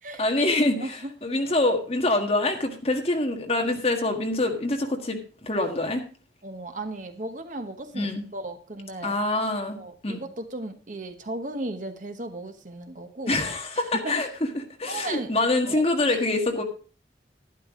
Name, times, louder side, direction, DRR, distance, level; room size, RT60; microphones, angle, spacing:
voice 1, 0.2-6.0 7.9-8.2 9.0-9.8 10.0-10.2 13.3-14.3 14.5-16.6, left 2 dB, 35° left, 3 dB, 1.7 m, -25 dB
voice 2, 0.8-1.1 6.4-9.2 9.7-13.4 13.7-14.2 14.9-15.3 15.7-16.3, right 2 dB, 45° right, 7 dB, 1.1 m, -36 dB
11.5 x 11.0 x 3.7 m, 0.37 s
head